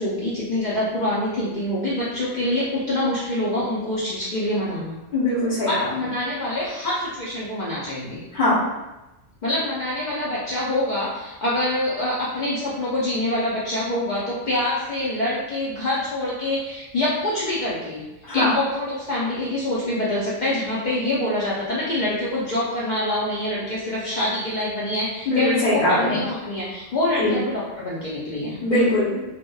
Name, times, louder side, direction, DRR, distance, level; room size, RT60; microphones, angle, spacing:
voice 1, 0.0-5.0 5.7-8.2 9.4-18.0 18.3-28.6, left 1 dB, 70° left, -8 dB, 0.4 m, -25 dB
voice 2, 5.1-5.9 8.3-8.6 18.3-18.5 25.3-26.2 27.2-27.3 28.6-29.2, left 2 dB, 50° left, -13 dB, 0.8 m, -21 dB
2.8 x 2.1 x 2.2 m, 1.0 s
omnidirectional pair, 1.3 m